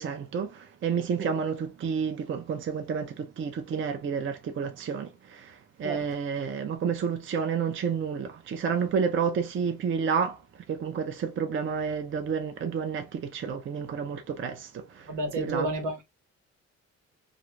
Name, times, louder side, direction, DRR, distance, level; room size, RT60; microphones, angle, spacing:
voice 1, 0.0-10.4 10.7-15.7, right 6 dB, 40° right, 0.5 m, -30 dB
voice 2, 15.1-16.0, right 2 dB, 80° right, 1.1 m, -30 dB
2.5 x 2.4 x 3.1 m
cardioid pair, 90°, 30 cm